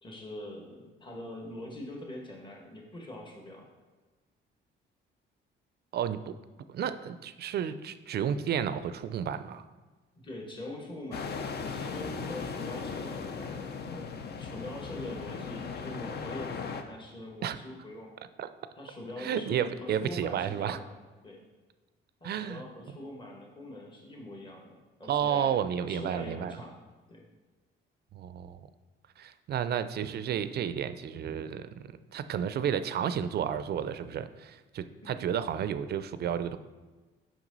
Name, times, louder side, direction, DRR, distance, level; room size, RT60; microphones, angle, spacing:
voice 1, 0.0-3.7 10.2-14.1 14.4-18.1 18.7-20.9 21.2-21.4 22.2-25.5 25.9-26.8 27.1-27.3 35.0-35.2, left 1 dB, 25° left, -1 dB, 1.4 m, -43 dB
voice 2, 5.9-6.3 6.7-9.6 17.4-17.6 18.4-18.5 19.2-20.8 22.2-22.6 25.1-26.6 28.1-28.7 29.2-31.8 32.1-36.6, right 8 dB, 55° right, 12 dB, 0.4 m, -32 dB
sound 1, 11.1-16.8, left 5 dB, 55° left, 0.6 m, -37 dB
6.0 x 5.4 x 4.0 m, 1.3 s
cardioid pair, 90°, 20 cm